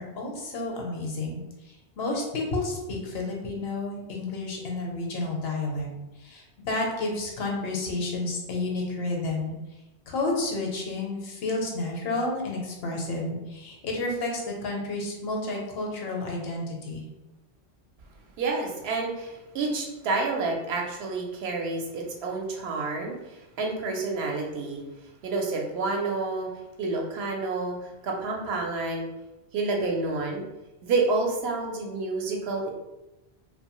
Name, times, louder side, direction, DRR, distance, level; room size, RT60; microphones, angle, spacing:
voice 1, 0.0-5.9 6.2-9.5 10.1-17.0, left 2 dB, 65° left, 0 dB, 0.8 m, -31 dB
voice 2, 18.4-24.8 25.2-26.5 26.8-29.1 29.5-30.4 30.8-32.7, right 3 dB, 70° right, 1 dB, 0.8 m, -29 dB
2.6 x 2.2 x 2.9 m, 0.98 s
omnidirectional pair, 1.1 m